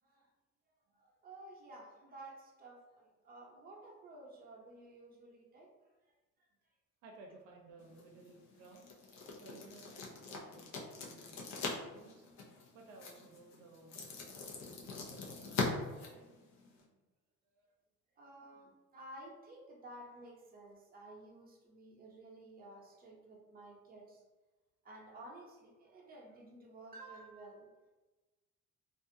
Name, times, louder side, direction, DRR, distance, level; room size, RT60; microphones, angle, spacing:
voice 1, 0.9-5.7 14.4-14.5 16.7-17.0 18.2-24.2 24.8-27.9, right 2 dB, 30° right, -2 dB, 0.7 m, -53 dB
voice 2, 7.0-8.9 9.4-12.3 12.7-14.1 14.4-16.3 17.5-17.7 25.9-26.1, right 3 dB, 80° right, 0 dB, 0.6 m, -58 dB
sound 1, 7.8-16.8, left 4 dB, 60° left, 0.7 m, -43 dB
2.5 x 2.3 x 2.7 m, 1.2 s
cardioid pair, 100°, 31 cm